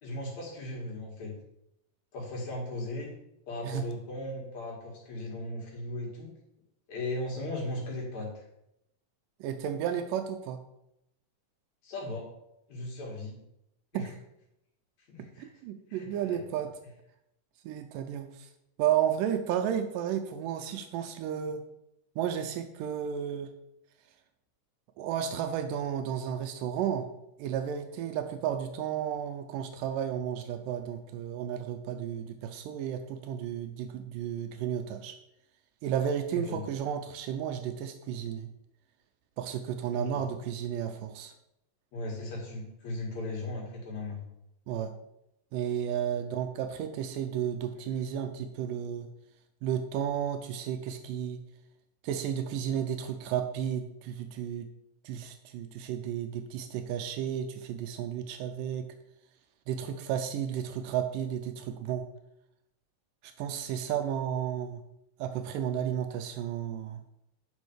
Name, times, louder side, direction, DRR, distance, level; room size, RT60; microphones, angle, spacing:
voice 1, 0.0-1.4 2.1-3.1 3.5-6.3 6.9-8.4 11.8-12.3 12.7-13.4 13.9-14.1 15.1-15.5 15.9-16.4 36.3-36.6 39.9-40.2 41.9-44.2, left 1 dB, 55° left, -2 dB, 3.4 m, -37 dB
voice 2, 9.4-10.6 13.9-14.1 15.4-16.7 17.6-18.5 18.8-21.6 22.2-23.5 25.0-27.1 27.4-35.2 35.8-38.5 39.4-41.3 44.7-44.9 45.5-49.1 49.6-51.4 52.0-54.7 55.0-58.9 59.7-62.1 63.4-64.8 65.2-67.0, right 9 dB, 85° right, 7 dB, 2.3 m, -33 dB
9.5 x 5.6 x 4.8 m, 0.81 s
omnidirectional pair, 3.8 m